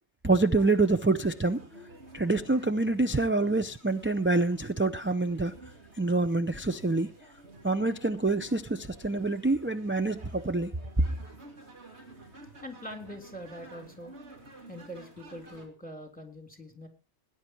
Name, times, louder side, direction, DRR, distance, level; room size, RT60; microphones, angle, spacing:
voice 1, 0.2-1.6 2.1-5.5 6.0-7.1 7.6-10.7, right 3 dB, 15° right, 0.4 m, -26 dB
sound 1, 0.6-15.7, right 2 dB, 70° right, 3.1 m, -51 dB
voice 2, 12.6-14.1 14.7-16.9, equal, 5° left, 3.3 m, -43 dB
19.0 x 10.0 x 4.5 m
omnidirectional pair, 1.2 m